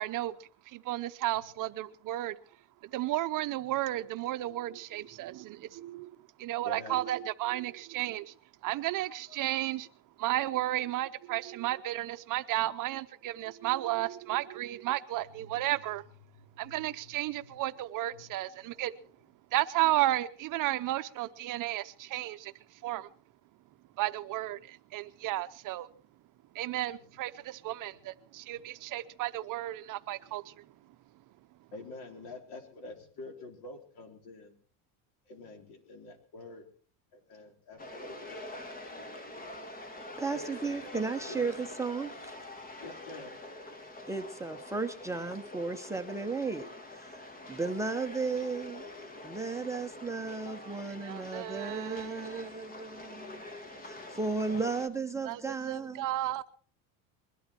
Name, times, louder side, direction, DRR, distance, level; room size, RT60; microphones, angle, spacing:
voice 1, 0.0-2.4 2.9-8.3 8.6-9.9 10.2-16.0 16.6-18.9 19.5-23.1 24.0-25.9 26.5-30.6 50.5-50.8 51.0-52.5 55.2-56.4, right 15 dB, 50° right, 0.7 m, -33 dB
voice 2, 6.6-7.0 15.4-15.6 16.3-17.6 18.1-18.3 27.9-28.1 31.7-34.5 35.3-36.6 37.1-38.4 40.3-40.9 41.3-41.4 42.8-43.4, left 2 dB, 60° left, 4.1 m, -47 dB
sound 1, 37.8-54.9, left 2 dB, 20° left, 1.5 m, -45 dB
voice 3, 40.2-42.3 44.1-47.2 47.5-48.9 49.2-53.4 53.8-56.0, right 4 dB, 5° right, 0.9 m, -35 dB
21.5 x 12.0 x 4.5 m
cardioid pair, 140°, 42 cm